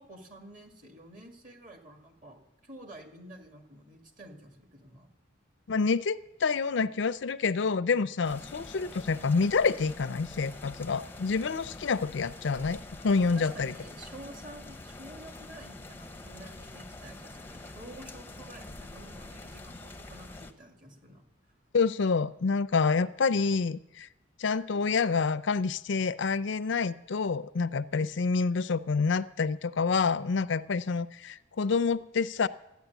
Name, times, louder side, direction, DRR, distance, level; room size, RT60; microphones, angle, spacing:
voice 1, 0.0-5.1 13.2-21.2 27.9-28.1, right 1 dB, 40° right, 3 dB, 2.2 m, -50 dB
voice 2, 5.7-12.8 13.0-13.7 21.7-24.1 24.4-32.5, left 4 dB, 65° left, 14 dB, 0.5 m, -27 dB
sound 1, 8.2-20.5, left 2 dB, 10° left, 0.7 m, -46 dB
13.5 x 9.4 x 8.1 m, 0.92 s
head